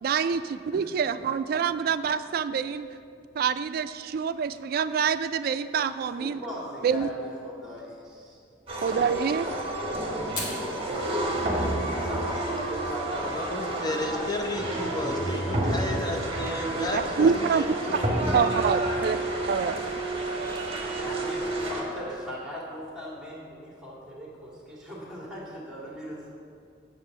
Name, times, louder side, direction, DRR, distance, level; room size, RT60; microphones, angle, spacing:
voice 1, 0.0-2.9 3.4-6.4 6.8-7.1 8.8-9.5 16.9-17.7 17.9-18.0 18.3-19.2 19.5-19.8, right 6 dB, 55° right, 12 dB, 0.3 m, -26 dB
voice 2, 6.0-8.4 8.9-9.3 10.0-11.3 11.9-14.7 21.0-26.3, equal, 5° right, -5 dB, 2.1 m, -39 dB
sound 1, 8.7-21.8, right 1 dB, 30° right, 1.2 m, -30 dB
Fire, 10.2-19.4, left 2 dB, 45° left, 1.6 m, -46 dB
voice 3, 13.2-18.2, left 1 dB, 25° left, 2 dB, 0.7 m, -33 dB
7.5 x 4.9 x 6.5 m, 2.4 s
head